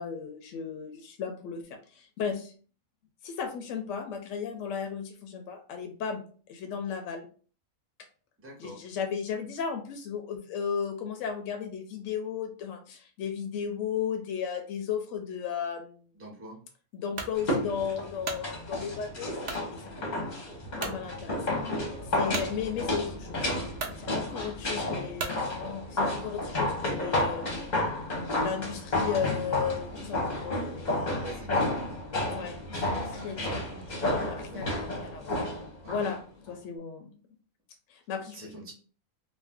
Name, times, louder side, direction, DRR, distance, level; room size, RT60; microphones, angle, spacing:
voice 1, 0.0-2.5 3.2-6.2 6.5-7.3 8.6-16.0 16.9-19.3 19.7-20.2 20.8-21.7 22.0-27.7 28.4-31.4 32.2-33.6 33.9-35.3 35.9-37.1 37.9-38.4, left 7 dB, 70° left, 5 dB, 0.9 m, -35 dB
voice 2, 8.4-8.8 16.1-16.6 31.2-32.0 32.9-34.9 35.2-35.4 35.8-35.9 38.3-38.7, right 1 dB, 15° right, -2 dB, 0.6 m, -46 dB
sound 1, 17.2-17.4 18.0-18.5 19.4-19.7 20.2-20.3 20.8-21.0 22.3-22.5 23.3-23.4 23.7-24.0 25.2-25.4, right 4 dB, 65° right, 0.4 m, -35 dB
sound 2, 17.3-36.2 36.5-36.6, left 1 dB, 40° left, 0.8 m, -31 dB
2.5 x 2.2 x 3.4 m, 0.41 s
omnidirectional pair, 1.4 m